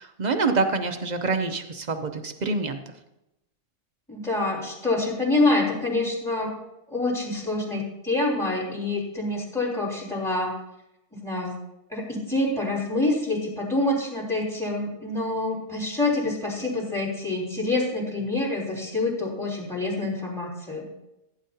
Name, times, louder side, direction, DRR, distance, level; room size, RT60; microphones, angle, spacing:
voice 1, 0.0-2.8, right 3 dB, 45° right, 7 dB, 0.6 m, -26 dB
voice 2, 4.1-6.6 6.9-10.6 11.1-11.5 11.9-20.9, left 2 dB, ahead, -2 dB, 3.2 m, -26 dB
15.5 x 9.5 x 2.8 m, 0.91 s
omnidirectional pair, 1.5 m